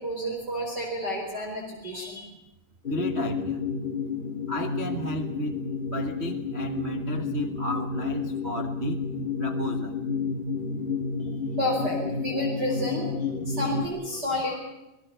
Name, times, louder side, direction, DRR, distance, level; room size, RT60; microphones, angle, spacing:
voice 1, 0.0-2.2 11.2-11.3 11.6-14.6, equal, 30° right, 0 dB, 5.0 m, -31 dB
sound 1, 2.8-13.9, left 5 dB, 20° left, 2.0 m, -30 dB
voice 2, 2.9-3.6 4.5-5.6 5.9-9.0 9.4-10.0, right 1 dB, 45° right, 3 dB, 0.8 m, -33 dB
28.0 x 19.0 x 6.9 m, 0.93 s
omnidirectional pair, 3.9 m